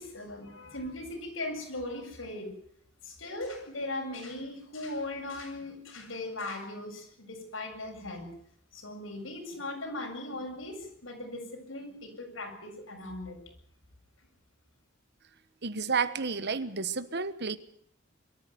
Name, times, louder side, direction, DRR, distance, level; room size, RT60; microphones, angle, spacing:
voice 1, 0.0-2.5 3.0-8.3 8.7-13.4, left 2 dB, 80° left, 2 dB, 7.5 m, -39 dB
voice 2, 15.6-17.6, right 5 dB, 55° right, 13 dB, 1.3 m, -31 dB
23.5 x 14.0 x 9.6 m, 0.67 s
head